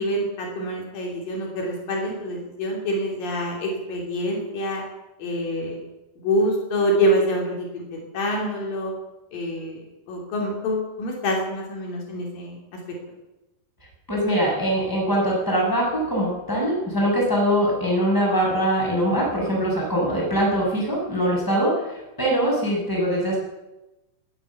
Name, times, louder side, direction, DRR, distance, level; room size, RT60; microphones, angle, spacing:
voice 1, 0.0-4.8 5.2-5.8 6.2-8.9 9.3-9.8 10.1-12.6, equal, 75° left, -1 dB, 4.8 m, -26 dB
voice 2, 14.1-23.4, equal, 5° left, -3 dB, 6.1 m, -22 dB
20.0 x 9.7 x 7.1 m, 1.0 s
omnidirectional pair, 4.0 m